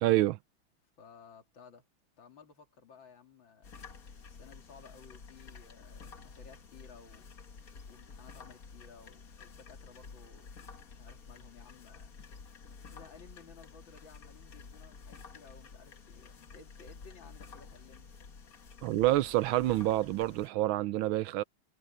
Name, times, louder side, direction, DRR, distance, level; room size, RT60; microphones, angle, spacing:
voice 1, 0.0-0.4 18.8-21.4, right 16 dB, 80° right, 1.3 m, -27 dB
voice 2, 1.0-1.8 2.2-3.7 4.3-7.3 7.9-10.5 10.9-12.1 12.9-18.1, left 5 dB, 65° left, 3.0 m, -56 dB
sound 1, 3.6-20.5, left 5 dB, 45° left, 1.8 m, -51 dB
omnidirectional pair, 2.3 m